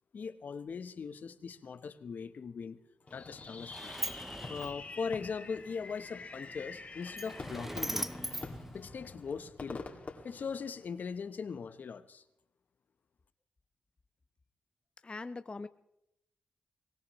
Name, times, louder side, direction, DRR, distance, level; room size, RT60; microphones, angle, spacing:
voice 1, 0.1-2.8 3.1-3.9 4.5-8.1 8.7-9.9 10.2-12.2, left 5 dB, 60° left, 12 dB, 0.9 m, -40 dB
Fireworks, 3.1-11.2, left 3 dB, 45° left, 2.2 m, -47 dB
Sliding door, 3.1-9.5, right 1 dB, 10° right, 0.6 m, -42 dB
voice 2, 15.0-15.7, left 3 dB, 30° left, 12 dB, 0.5 m, -41 dB
23.0 x 18.0 x 3.1 m, 0.81 s
supercardioid pair, 50°, 3 cm